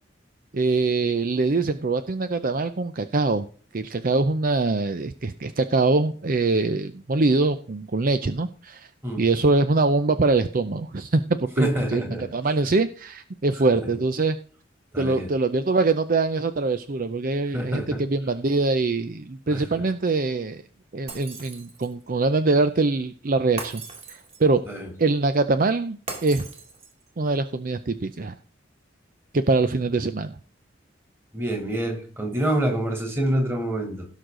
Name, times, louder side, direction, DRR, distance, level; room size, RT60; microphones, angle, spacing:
voice 1, 0.5-3.5 3.7-8.9 9.2-14.4 15.0-20.6 20.9-23.8 24.1-24.6 25.0-26.5 27.2-28.3 29.3-30.4, right 3 dB, 45° right, 11 dB, 0.6 m, -23 dB
voice 2, 11.6-12.2 13.7-13.9 14.9-15.3 17.5-18.0 19.5-19.8 24.7-24.9 31.3-34.1, right 1 dB, 15° right, 2 dB, 3.2 m, -26 dB
Shatter, 21.1-22.0 23.6-24.6 26.1-27.1, right 3 dB, 30° right, 2.4 m, -38 dB
17.0 x 6.5 x 3.8 m, 0.42 s
head